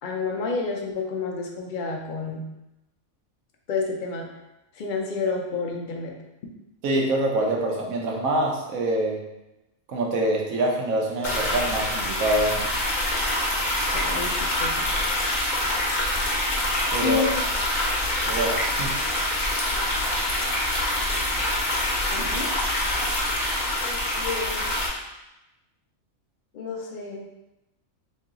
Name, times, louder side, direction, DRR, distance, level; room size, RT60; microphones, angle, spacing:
voice 1, 0.0-2.4 3.7-4.3 4.7-6.1 13.8-14.9 17.0-17.3 22.1-22.5 23.8-24.7 26.5-27.2, left 4 dB, 70° left, 0 dB, 0.4 m, -30 dB
voice 2, 6.8-9.2 9.9-12.7 16.9-17.2 18.2-18.9, right 1 dB, 80° right, -1 dB, 1.1 m, -25 dB
sound 1, 11.2-24.9, left 1 dB, 45° left, 0.7 m, -25 dB
3.1 x 2.8 x 3.7 m, 0.95 s
omnidirectional pair, 1.5 m